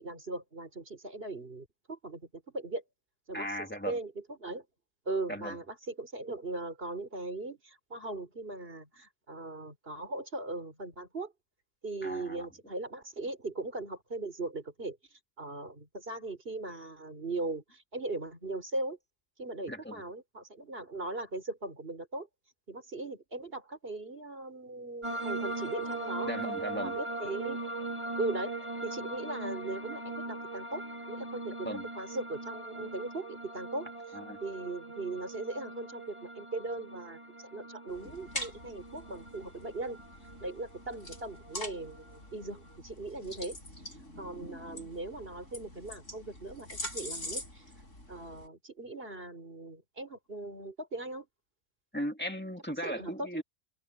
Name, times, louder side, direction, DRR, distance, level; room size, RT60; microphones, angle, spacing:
voice 1, 0.0-2.8 3.3-4.6 5.1-11.3 11.8-19.0 19.4-22.3 22.7-26.3 26.8-27.6 28.2-28.5 28.8-31.7 32.0-33.9 34.4-40.0 40.4-43.6 44.2-47.6 48.1-51.3 52.8-53.4, right 2 dB, 45° right, 4.5 m, -39 dB
voice 2, 3.3-4.0 5.3-5.6 12.0-12.5 19.7-20.0 26.2-27.0 31.6-31.8 34.1-34.4 51.9-53.4, equal, 10° left, 2.4 m, -37 dB
sound 1, 25.0-42.8, right 2 dB, 20° right, 3.5 m, -40 dB
sound 2, 37.9-48.5, left 1 dB, 70° left, 8.5 m, -44 dB
omnidirectional pair, 1.3 m